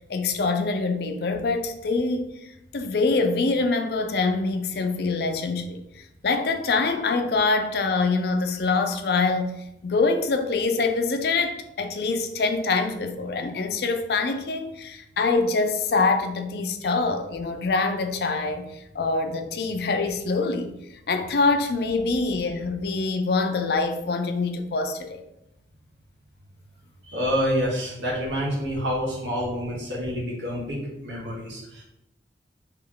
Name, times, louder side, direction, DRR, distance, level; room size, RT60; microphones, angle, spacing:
voice 1, 0.1-2.3 2.7-5.8 6.2-9.6 9.8-18.7 18.9-20.7 21.1-25.2, left 3 dB, 60° left, 0.4 m, -24 dB
voice 2, 27.1-31.8, equal, 80° right, 1.4 m, -28 dB
3.3 x 3.0 x 3.7 m
head